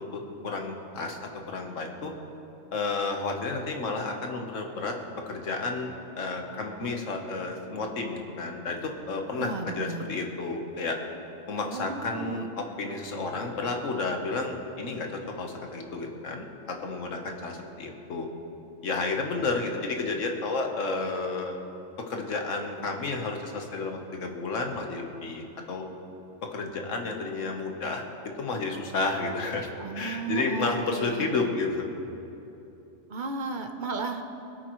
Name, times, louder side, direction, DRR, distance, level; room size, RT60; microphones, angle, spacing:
voice 1, 0.1-2.1 2.7-5.0 5.3-11.0 11.5-18.3 18.8-21.6 22.0-25.8 26.4-29.7 29.9-31.9, left 3 dB, 70° left, 3 dB, 1.5 m, -31 dB
voice 2, 9.4-10.0 11.6-12.5 29.8-31.6 33.1-34.2, right 3 dB, 40° right, 5 dB, 0.9 m, -34 dB
21.5 x 9.1 x 3.1 m, 2.9 s
omnidirectional pair, 1.4 m